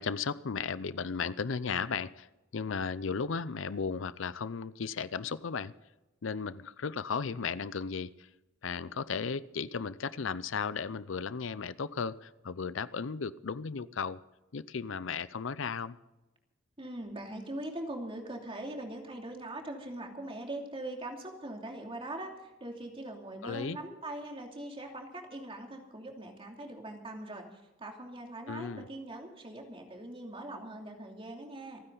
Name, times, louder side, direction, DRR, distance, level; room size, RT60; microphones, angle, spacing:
voice 1, 0.0-2.3 2.5-5.7 6.2-8.3 8.6-14.2 14.5-16.0 23.4-23.8 28.5-28.9, left 5 dB, 70° left, 17 dB, 0.6 m, -35 dB
voice 2, 16.8-31.8, right 1 dB, 25° right, 2 dB, 2.9 m, -42 dB
28.0 x 10.0 x 4.0 m, 1.0 s
head